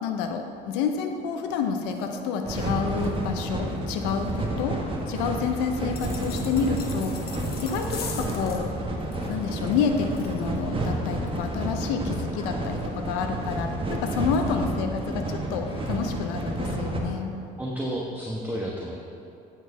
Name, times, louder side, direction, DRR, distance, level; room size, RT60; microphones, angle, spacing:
voice 1, 0.0-4.8 5.1-8.7 9.3-17.4, left 6 dB, 80° left, 5 dB, 0.7 m, -29 dB
sound 1, 1.9-15.1 15.3-15.4 15.6-16.0, left 2 dB, 25° left, 1.3 m, -47 dB
sound 2, 2.4-17.0, right 1 dB, 25° right, 1.4 m, -30 dB
sound 3, 5.9-8.7, left 6 dB, 50° left, 1.1 m, -40 dB
voice 2, 17.6-19.0, equal, 10° right, -3 dB, 1.1 m, -31 dB
8.9 x 4.5 x 5.7 m, 2.7 s
supercardioid pair, 70°, 21 cm